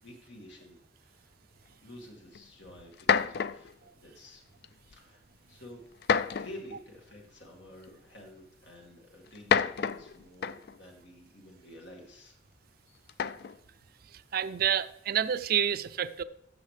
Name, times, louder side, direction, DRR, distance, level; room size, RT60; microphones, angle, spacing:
voice 1, 0.0-1.3 1.8-4.4 4.8-5.8 6.2-12.4 12.8-13.1, left 1 dB, 80° left, 2.2 m, -50 dB
sound 1, 2.3-2.4 2.9-3.7 4.6-5.0 6.0-6.7 7.8-7.9 9.3-10.8 13.1-13.6, left 6 dB, 60° left, 0.4 m, -29 dB
voice 2, 14.3-16.2, right 9 dB, 55° right, 0.4 m, -28 dB
14.0 x 7.2 x 3.3 m
head